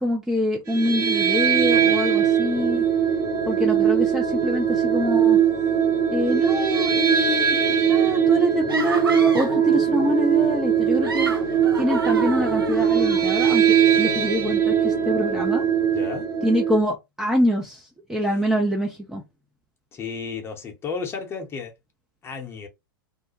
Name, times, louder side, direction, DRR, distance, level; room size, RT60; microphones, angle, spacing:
voice 1, 0.0-2.8 3.5-5.4 6.1-7.6 7.9-11.3 11.8-15.7 16.4-19.2, equal, 5° right, 0.4 m, -25 dB
sound 1, 0.7-16.8, right 8 dB, 50° right, 1.0 m, -21 dB
sound 2, 8.7-9.7 10.8-13.2, right 4 dB, 75° right, 0.7 m, -31 dB
voice 2, 15.9-16.3 19.9-21.7 22.2-22.7, left 5 dB, 20° left, 0.8 m, -33 dB
2.4 x 2.1 x 2.9 m
figure-of-eight pair, 95°, 12 cm